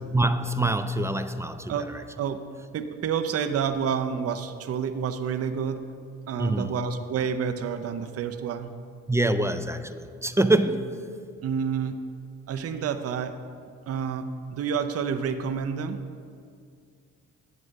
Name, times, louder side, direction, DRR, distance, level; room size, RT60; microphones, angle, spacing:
voice 1, 0.1-2.0 6.4-6.8 9.1-10.9, right 2 dB, 10° right, 0.3 m, -25 dB
voice 2, 1.7-2.4 2.7-5.8 6.3-8.7 11.4-12.0 12.5-13.4 13.9-14.3 14.5-16.0, right 7 dB, 50° right, 0.6 m, -29 dB
9.7 x 4.8 x 6.3 m
cardioid pair, 90°, 30 cm